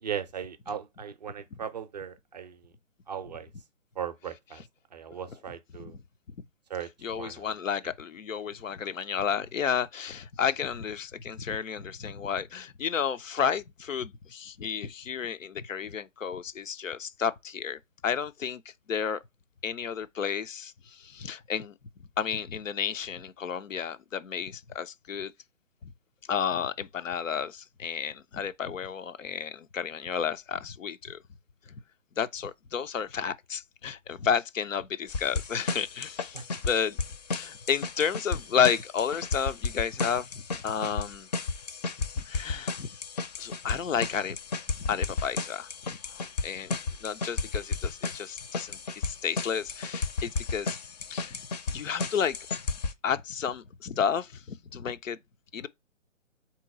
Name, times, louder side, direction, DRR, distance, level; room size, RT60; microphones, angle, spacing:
voice 1, 0.0-2.7 3.1-3.5 4.0-4.6 4.9-6.0 6.7-6.9 7.2-7.5 36.3-36.4, right 8 dB, 35° right, 0.5 m, -37 dB
voice 2, 7.0-18.6 18.9-19.2 19.6-21.7 22.2-25.3 25.8-25.9 26.3-31.2 31.7-31.8 32.2-37.0 37.3-41.3 42.2-42.9 43.4-44.4 44.9-45.7 46.0-50.8 51.1-51.5 51.7-52.4 53.0-55.2 55.5-55.7, left 7 dB, 85° left, 0.6 m, -31 dB
sound 1, 35.1-52.9, left 4 dB, 35° left, 0.5 m, -34 dB
3.8 x 3.0 x 4.7 m
hypercardioid pair, 140°, 38 cm